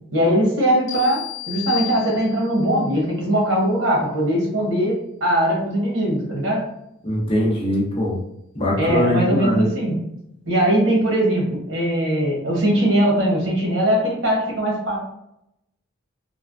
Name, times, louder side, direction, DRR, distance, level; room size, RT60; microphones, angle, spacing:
voice 1, 0.1-6.6 8.8-10.0 10.5-15.0, right 1 dB, 90° right, -2 dB, 1.1 m, -20 dB
sound 1, 0.9-2.7, left 17 dB, 75° left, 0.7 m, -33 dB
voice 2, 7.0-8.2 8.6-9.7, left 1 dB, 30° left, -3 dB, 0.7 m, -21 dB
3.2 x 2.1 x 2.5 m, 0.79 s
head